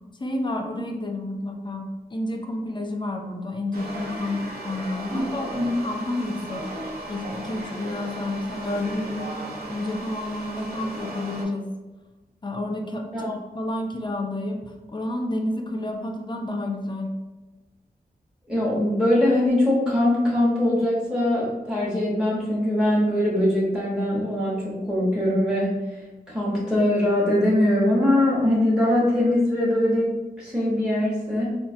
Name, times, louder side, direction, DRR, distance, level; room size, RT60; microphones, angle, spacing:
voice 1, 0.2-6.7 7.1-9.4 9.7-11.7 12.4-17.1, left 1 dB, 30° left, 3 dB, 0.4 m, -30 dB
sound 1, 3.7-11.4, right 1 dB, 80° right, 0.7 m, -36 dB
voice 2, 5.1-5.7 13.1-13.4 18.5-26.0 26.3-31.4, left 1 dB, 5° right, -7 dB, 0.8 m, -22 dB
3.8 x 2.4 x 2.6 m, 1.2 s
wide cardioid pair, 105°, 16 cm